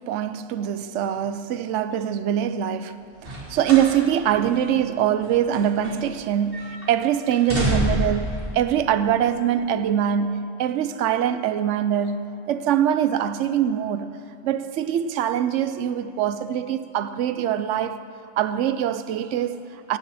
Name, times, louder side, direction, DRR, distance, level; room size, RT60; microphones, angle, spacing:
voice 1, 0.0-3.0 3.2-14.1 14.4-18.0 18.4-20.0, right 9 dB, 70° right, 0.9 m, -23 dB
sound 1, 3.2-4.0 4.3-4.5 5.2-6.3 6.5-6.9 7.3-8.2 9.1-9.2, equal, 45° right, 3.3 m, -27 dB
17.0 x 16.0 x 4.2 m
omnidirectional pair, 1.3 m